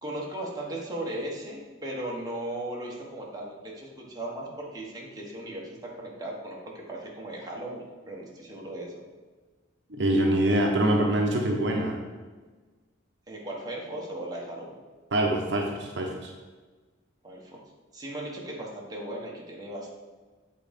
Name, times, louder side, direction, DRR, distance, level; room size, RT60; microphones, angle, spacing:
voice 1, 0.0-9.0 13.3-14.7 17.2-17.6 17.9-19.9, right 1 dB, 20° right, -3 dB, 1.3 m, -37 dB
voice 2, 9.9-12.0 15.1-16.3, right 1 dB, 65° right, 1 dB, 0.9 m, -24 dB
7.9 x 3.8 x 5.2 m, 1.3 s
head